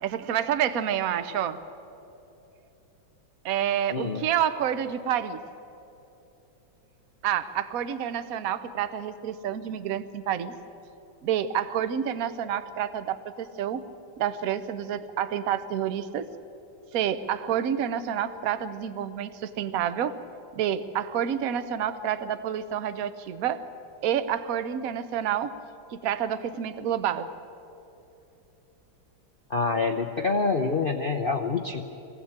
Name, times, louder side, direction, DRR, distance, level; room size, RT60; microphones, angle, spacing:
voice 1, 0.0-1.6 3.4-5.4 7.2-10.5 11.2-13.8 14.2-16.3 16.9-20.2 20.5-23.7 24.0-25.5 25.9-27.3, right 9 dB, 55° right, 12 dB, 1.1 m, -28 dB
voice 2, 3.9-4.2 29.5-31.8, left 4 dB, 65° left, 5 dB, 0.5 m, -26 dB
22.0 x 16.5 x 8.8 m, 3.0 s
omnidirectional pair, 2.2 m